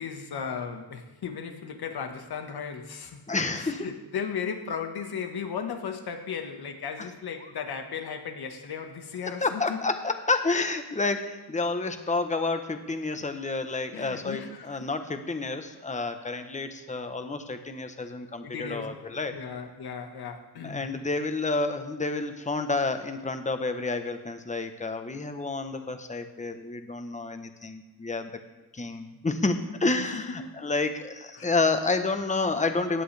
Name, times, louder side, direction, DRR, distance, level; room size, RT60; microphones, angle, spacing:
voice 1, 0.0-3.2 3.5-9.8 13.9-14.9 18.0-18.1 18.4-20.9 29.8-30.5 31.3-31.5, left 6 dB, 80° left, 5 dB, 1.6 m, -36 dB
voice 2, 3.3-3.9 9.4-19.4 20.6-28.3 28.7-33.0, left 3 dB, 20° left, 7 dB, 1.1 m, -29 dB
16.5 x 10.0 x 3.4 m, 1.1 s
cardioid pair, 90°, 38 cm